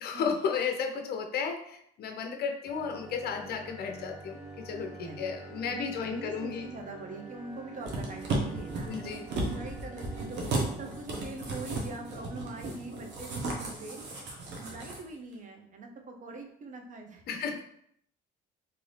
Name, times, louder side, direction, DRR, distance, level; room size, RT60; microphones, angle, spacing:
voice 1, 0.0-6.7 8.9-9.2 17.3-17.6, left 6 dB, 55° left, 4 dB, 0.6 m, -33 dB
sound 1, 2.7-14.3, right 3 dB, 5° right, 0.8 m, -47 dB
voice 2, 5.0-5.4 5.6-14.0 14.3-17.4, right 3 dB, 40° right, 4 dB, 0.6 m, -43 dB
sound 2, 7.8-15.0 15.3-15.4, right 2 dB, 65° right, 0.9 m, -35 dB
2.7 x 2.6 x 3.2 m, 0.70 s
supercardioid pair, 90°, 19 cm